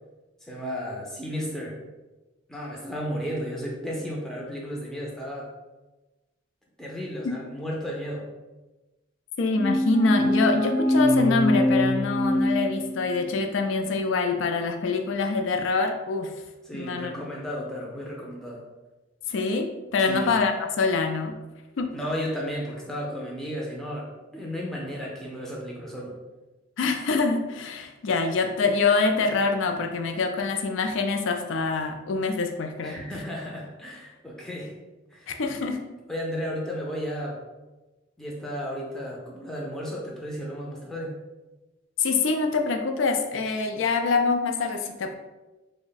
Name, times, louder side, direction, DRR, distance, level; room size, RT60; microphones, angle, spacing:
voice 1, 0.4-1.8 2.5-5.5 6.8-8.3 16.7-18.6 20.1-20.3 21.9-26.2 32.8-34.7 35.1-35.4 36.1-37.4 38.2-41.2, equal, 5° left, -4 dB, 0.4 m, -33 dB
voice 2, 9.4-16.3 16.7-17.2 19.3-19.7 19.9-21.4 21.8-21.9 26.8-33.0 35.3-35.8 42.0-45.1, left 4 dB, 80° left, 4 dB, 0.4 m, -25 dB
sound 1, 9.5-13.3, left 1 dB, 60° left, 0.9 m, -24 dB
3.4 x 2.1 x 3.9 m, 1.1 s
head